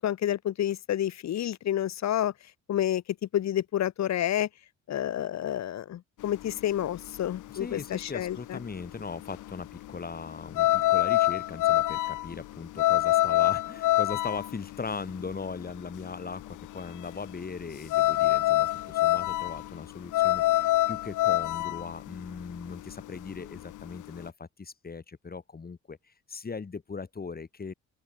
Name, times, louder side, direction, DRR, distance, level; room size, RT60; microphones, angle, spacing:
voice 1, 0.0-2.3 2.7-3.0 3.3-4.5 4.9-8.6, left 11 dB, 65° left, 1.5 m, -29 dB
sound 1, 6.2-24.3, left 16 dB, 80° left, 1.1 m, -26 dB
voice 2, 7.5-26.0 26.3-27.7, left 4 dB, 30° left, 3.2 m, -39 dB
open air
cardioid pair, 90°, 30 cm